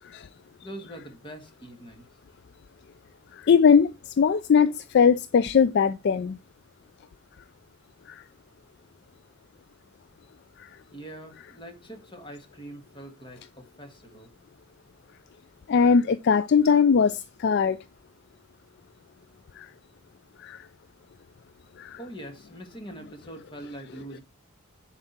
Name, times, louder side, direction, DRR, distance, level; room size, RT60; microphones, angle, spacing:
voice 1, 0.6-2.1 10.9-14.3 22.0-24.2, right 1 dB, 25° left, 1.7 m, -43 dB
voice 2, 3.4-6.4 15.7-17.8 19.6-19.7 20.4-20.6 21.8-22.0, left 6 dB, 55° left, 0.4 m, -20 dB
9.9 x 4.9 x 4.3 m
head